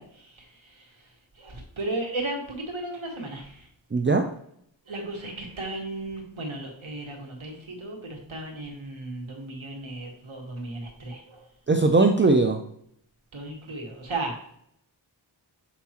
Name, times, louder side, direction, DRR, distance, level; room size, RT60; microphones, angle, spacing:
voice 1, 0.0-3.7 4.8-11.6 13.3-14.4, right 2 dB, 85° right, 1 dB, 1.7 m, -35 dB
voice 2, 3.9-4.2 11.7-12.6, right 3 dB, 25° right, 5 dB, 0.6 m, -19 dB
7.1 x 5.7 x 2.9 m, 0.69 s
wide cardioid pair, 45°, 46 cm